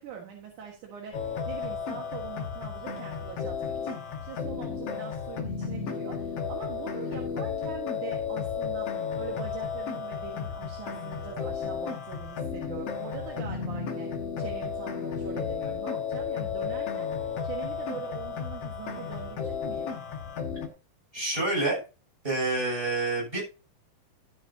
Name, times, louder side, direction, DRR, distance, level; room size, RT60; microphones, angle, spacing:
voice 1, 0.0-14.1 14.4-19.9, right 7 dB, 70° right, 0 dB, 3.0 m, -42 dB
sound 1, 1.1-20.7, left 6 dB, 55° left, 2.2 m, -33 dB
voice 2, 21.1-21.8 22.2-23.4, right 2 dB, 15° right, -2 dB, 7.1 m, -27 dB
12.5 x 9.7 x 2.7 m, 0.30 s
omnidirectional pair, 3.7 m